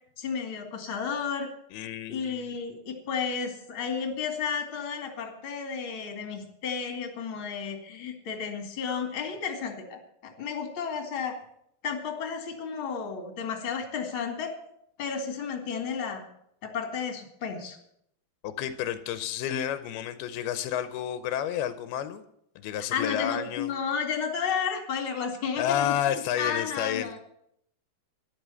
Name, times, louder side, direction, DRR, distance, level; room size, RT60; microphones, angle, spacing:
voice 1, 0.2-1.5 2.1-11.4 11.8-14.5 15.0-16.2 16.6-17.8 22.9-27.2, left 6 dB, 40° left, 4 dB, 2.6 m, -32 dB
voice 2, 1.7-2.5 18.4-22.2 22.6-23.7 25.6-27.1, left 10 dB, 85° left, 11 dB, 2.7 m, -30 dB
12.5 x 10.5 x 7.0 m, 0.73 s
omnidirectional pair, 4.4 m